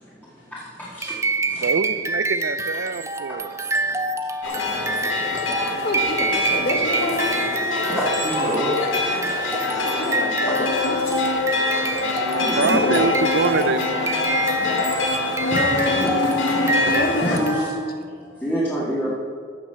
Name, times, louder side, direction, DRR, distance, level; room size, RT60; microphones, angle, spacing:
sound 1, 1.0-18.1, right 2 dB, 15° right, 0.5 m, -27 dB
voice 1, 1.6-3.6 7.9-8.1 8.4-8.6 12.4-14.2, right 4 dB, 65° right, 14 dB, 0.5 m, -25 dB
sound 2, 4.4-17.4, left 3 dB, 90° left, 1.9 m, -25 dB
voice 2, 5.8-7.4 9.8-11.0 15.4-17.6, left 1 dB, 50° left, 4 dB, 1.4 m, -26 dB
voice 3, 7.9-8.7 10.4-10.5 11.5-11.7 12.2-12.9 15.5-17.7 18.4-19.1, equal, 10° left, -9 dB, 2.1 m, -28 dB
14.0 x 6.0 x 6.8 m, 2.1 s
head